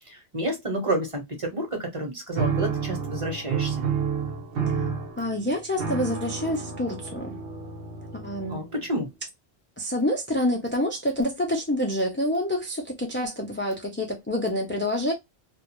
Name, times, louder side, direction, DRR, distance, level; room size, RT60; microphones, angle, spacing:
voice 1, 0.1-3.9 8.5-9.1, right 1 dB, 30° right, 1.0 m, -30 dB
sound 1, 2.3-8.8, right 6 dB, 65° right, 0.9 m, -30 dB
voice 2, 5.2-7.4 8.1-8.6 9.8-15.1, left 1 dB, 15° left, 0.4 m, -27 dB
2.5 x 2.3 x 2.9 m
omnidirectional pair, 1.1 m